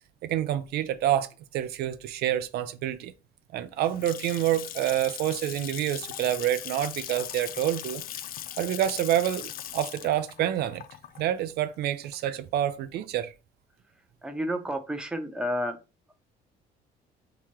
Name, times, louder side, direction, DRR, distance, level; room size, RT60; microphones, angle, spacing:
voice 1, 0.2-3.1 3.5-8.0 8.6-10.8 11.2-13.3, right 11 dB, 70° right, 0.5 m, -28 dB
Water tap faucet / Sink (filling or washing) / Splash splatter, 3.6-12.5, left 11 dB, 60° left, 0.4 m, -39 dB
voice 2, 14.2-15.8 16.1-16.2, equal, 5° right, 0.8 m, -31 dB
3.5 x 2.9 x 4.5 m
cardioid pair, 110°, 17 cm